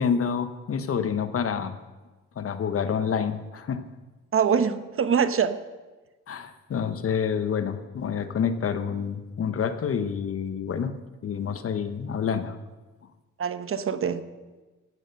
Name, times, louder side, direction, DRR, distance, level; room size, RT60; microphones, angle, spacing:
voice 1, 0.0-1.8 2.4-3.8 6.3-10.9 11.2-12.6, left 7 dB, 50° left, 10 dB, 1.1 m, -28 dB
voice 2, 4.3-5.6 13.4-14.2, right 7 dB, 45° right, 11 dB, 0.9 m, -24 dB
16.0 x 9.0 x 5.5 m, 1.2 s
cardioid pair, 90°, 30 cm